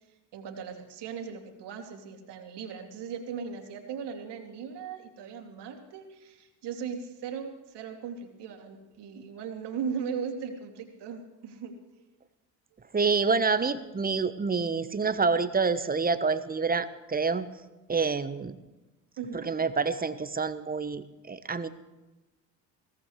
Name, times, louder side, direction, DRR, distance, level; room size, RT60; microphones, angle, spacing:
voice 1, 0.3-11.7 19.2-19.5, right 6 dB, 55° right, 3 dB, 2.7 m, -38 dB
voice 2, 12.9-17.5 17.9-18.6 19.3-21.7, right 4 dB, 20° right, 12 dB, 1.1 m, -27 dB
21.5 x 17.5 x 3.2 m, 1.1 s
hypercardioid pair, 60°, 49 cm